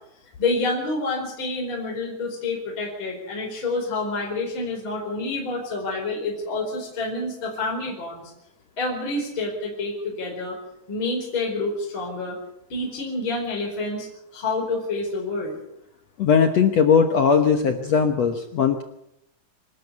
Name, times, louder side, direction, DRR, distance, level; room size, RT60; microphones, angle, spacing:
voice 1, 0.4-8.3 8.8-10.6 10.9-12.4 12.7-14.1 14.3-15.6, left 2 dB, 30° left, -1 dB, 5.2 m, -28 dB
voice 2, 16.2-18.8, left 6 dB, 65° left, 6 dB, 1.7 m, -19 dB
26.5 x 12.5 x 8.2 m, 0.79 s
omnidirectional pair, 4.7 m